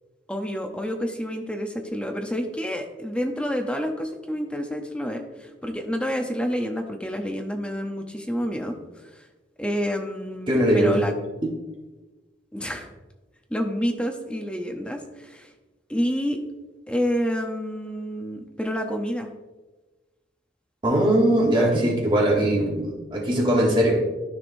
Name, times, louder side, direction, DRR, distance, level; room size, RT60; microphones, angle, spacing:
voice 1, 0.3-8.7 9.1-9.2 9.6-11.1 12.5-12.9 13.5-15.5 15.9-16.4 16.9-19.3, equal, 5° left, 3 dB, 0.6 m, -28 dB
voice 2, 10.5-11.0 20.8-24.0, right 1 dB, 25° right, -2 dB, 1.4 m, -20 dB
13.0 x 4.9 x 2.6 m, 1.2 s
head